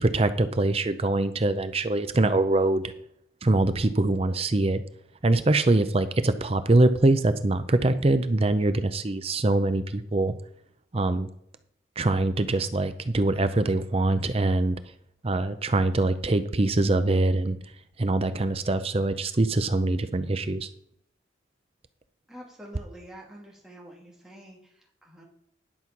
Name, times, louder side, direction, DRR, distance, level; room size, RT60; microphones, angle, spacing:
voice 1, 0.0-2.8 3.4-4.8 5.2-10.3 10.9-11.3 12.0-14.8 15.2-17.6 18.0-20.7, right 2 dB, 30° right, 11 dB, 0.6 m, -23 dB
voice 2, 22.3-25.2, equal, 5° right, -3 dB, 2.5 m, -47 dB
11.0 x 5.5 x 6.0 m, 0.71 s
head